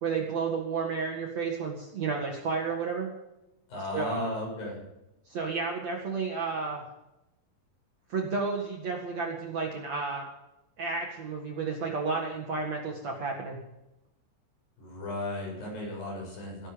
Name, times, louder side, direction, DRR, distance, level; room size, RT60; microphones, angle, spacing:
voice 1, 0.0-3.1 3.9-4.2 5.3-6.9 8.1-10.3 10.8-13.6, right 4 dB, 50° right, 1 dB, 2.6 m, -31 dB
voice 2, 3.7-4.8 14.8-16.7, left 1 dB, 55° left, -2 dB, 9.0 m, -35 dB
19.5 x 11.5 x 5.2 m, 0.92 s
omnidirectional pair, 4.8 m